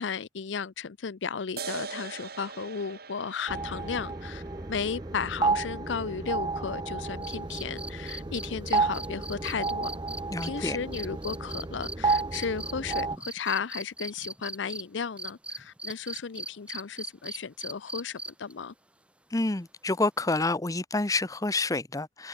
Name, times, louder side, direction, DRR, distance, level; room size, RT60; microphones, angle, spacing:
voice 1, 0.0-4.4 4.7-9.9 10.4-18.7, left 6 dB, 75° left, 0.6 m, -34 dB
sound 1, 1.6-8.5, right 5 dB, 55° right, 4.3 m, -45 dB
sound 2, 3.5-13.2, right 3 dB, 20° right, 0.8 m, -32 dB
sound 3, 7.2-14.8 15.2-18.5 20.2-20.3, right 1 dB, 5° right, 3.6 m, -39 dB
voice 2, 10.3-10.8 19.3-22.3, left 2 dB, 20° left, 0.8 m, -28 dB
head